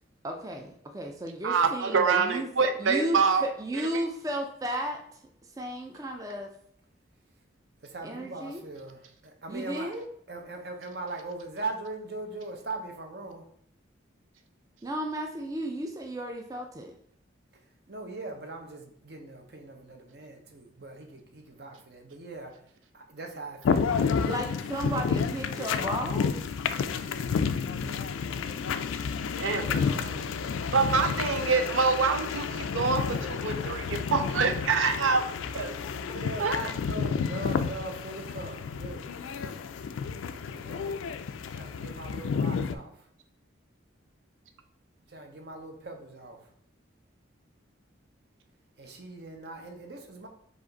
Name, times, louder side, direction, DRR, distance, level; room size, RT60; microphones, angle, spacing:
voice 1, 0.2-2.5 2.8-5.2 5.6-6.5 8.0-8.6 9.5-10.1 14.8-16.9 24.2-26.4 29.4-30.3, right 1 dB, 20° right, 2 dB, 0.3 m, -34 dB
voice 2, 1.4-3.4 29.3-29.7 30.7-35.7 36.4-36.6, right 5 dB, 85° right, 7 dB, 0.4 m, -26 dB
voice 3, 7.8-10.0 10.3-13.4 17.9-22.5 22.9-24.3 24.6-24.8 27.7-28.5 35.9-39.2 40.5-41.0 41.5-42.9 45.1-46.4 48.8-50.3, right 2 dB, 55° right, 4 dB, 0.8 m, -40 dB
sound 1, 23.6-42.8, left 6 dB, 90° left, 0.3 m, -31 dB
4.9 x 2.5 x 3.9 m, 0.66 s
head